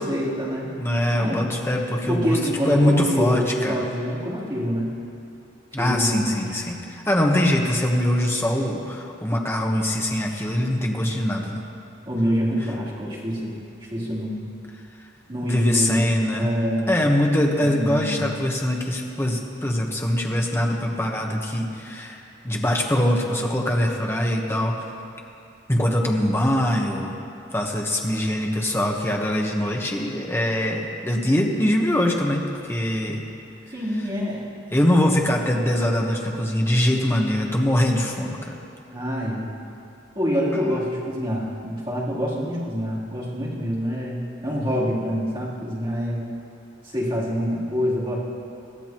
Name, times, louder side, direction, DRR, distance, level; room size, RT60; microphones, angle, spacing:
voice 1, 0.0-0.7 1.1-1.5 2.1-4.9 5.8-6.4 12.1-13.6 13.9-14.4 15.3-17.0 17.8-18.2 33.7-34.4 38.9-39.5 40.2-46.3 46.8-48.2, equal, 25° right, -8 dB, 3.4 m, -26 dB
voice 2, 0.8-2.4 2.7-3.8 5.7-11.6 15.4-16.5 16.9-24.8 25.7-27.2 27.5-33.2 34.7-38.6, left 1 dB, 15° left, 0 dB, 1.2 m, -23 dB
21.5 x 14.0 x 3.0 m, 2.7 s
head